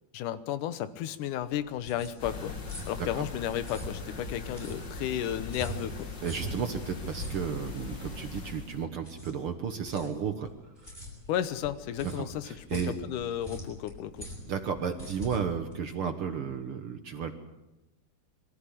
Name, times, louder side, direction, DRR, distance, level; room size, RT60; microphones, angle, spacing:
voice 1, 0.1-2.6 2.9-6.1 11.3-14.3, left 11 dB, 70° left, 13 dB, 2.3 m, -33 dB
sound 1, 1.4-16.6, right 1 dB, 10° left, 6.7 m, -44 dB
sound 2, 2.2-8.8, left 4 dB, 35° left, 2.4 m, -41 dB
voice 2, 6.2-10.5 12.0-12.9 14.4-17.3, right 7 dB, 60° right, 7 dB, 1.4 m, -33 dB
24.0 x 14.0 x 10.0 m, 0.98 s
omnidirectional pair, 4.1 m